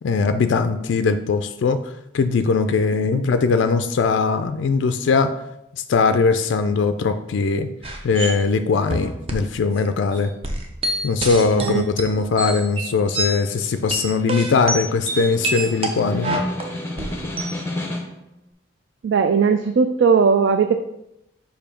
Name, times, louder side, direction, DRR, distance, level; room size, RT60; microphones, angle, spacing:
voice 1, 0.0-1.8 2.1-5.3 5.9-7.7 8.0-10.3 11.0-16.3, left 4 dB, 65° left, 9 dB, 0.3 m, -20 dB
sound 1, 7.8-8.4 8.9-9.5 9.8-9.9 10.1-13.4 13.7-17.6, right 2 dB, 30° right, 0.7 m, -27 dB
voice 2, 11.6-11.9 19.0-20.8, right 5 dB, 60° right, 7 dB, 0.3 m, -18 dB
Snare drum, 13.4-18.3, left 1 dB, 10° left, 0.7 m, -33 dB
6.8 x 2.7 x 5.1 m, 0.83 s
head